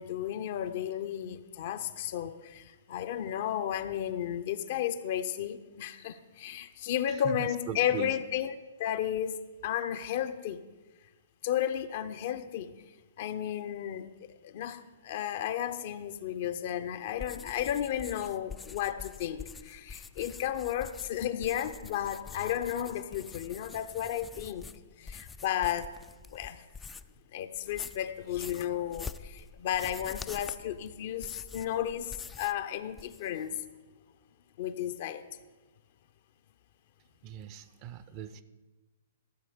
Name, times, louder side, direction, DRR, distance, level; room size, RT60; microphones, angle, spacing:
voice 1, 0.0-8.5 8.8-9.4 9.6-10.6 11.4-12.7 13.2-14.1 14.4-24.7 25.0-25.9 26.3-26.6 27.3-33.5 34.6-35.2, left 10 dB, 50° left, 10 dB, 0.6 m, -33 dB
voice 2, 7.1-8.2 37.2-38.4, right 9 dB, 35° right, 13 dB, 0.6 m, -40 dB
sound 1, 17.1-27.2 27.6-32.6 32.9-33.4, left 5 dB, 15° left, 0.3 m, -46 dB
13.5 x 6.9 x 5.1 m, 1.2 s
figure-of-eight pair, 115°, 0 cm